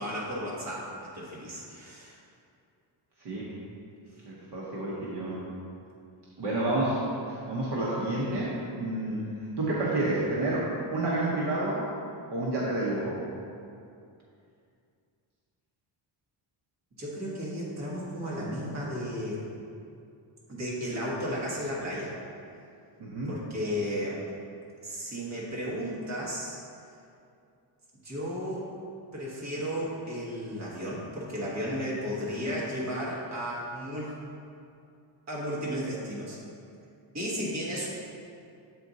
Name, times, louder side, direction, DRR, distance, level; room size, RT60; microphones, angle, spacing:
voice 1, 0.0-2.1 17.0-19.4 20.5-22.1 23.3-24.2 24.8-26.6 28.0-28.7 29.1-34.1 35.3-36.4 37.1-37.9, equal, 35° right, -6 dB, 1.4 m, -34 dB
voice 2, 4.2-5.4 6.4-7.0 7.3-9.2 9.6-11.8 12.3-13.1 23.0-23.3, right 2 dB, 55° right, -7 dB, 1.1 m, -29 dB
7.6 x 4.4 x 4.0 m, 2.5 s
wide cardioid pair, 175°, 49 cm